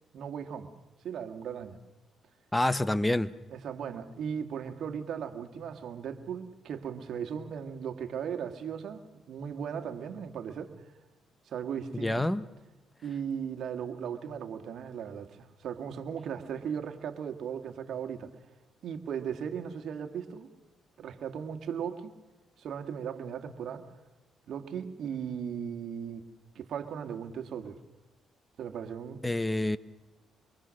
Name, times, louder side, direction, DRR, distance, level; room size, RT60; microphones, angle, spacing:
voice 1, 0.1-0.7 1.0-1.8 3.5-10.7 11.5-12.2 13.0-18.3 18.8-20.5 21.0-22.1 22.6-23.9 24.5-26.3 26.6-27.8 28.6-29.2, right 7 dB, 65° right, 1.8 m, -37 dB
voice 2, 2.5-3.3 12.0-12.4 29.2-29.8, left 1 dB, 10° left, 0.7 m, -27 dB
24.5 x 23.5 x 6.4 m
cardioid pair, 90°, 0 cm